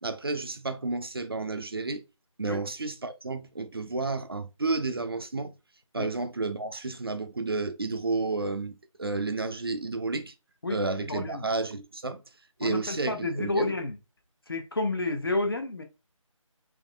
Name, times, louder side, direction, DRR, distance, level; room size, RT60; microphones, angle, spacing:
voice 1, 0.0-2.0 2.4-5.5 5.9-10.3 10.7-12.2 12.6-13.7, right 3 dB, 45° right, 0.5 m, -31 dB
voice 2, 11.1-11.5 12.6-14.0 14.5-15.8, left 2 dB, 45° left, 0.6 m, -30 dB
3.6 x 3.0 x 2.2 m
figure-of-eight pair, 165°, 18 cm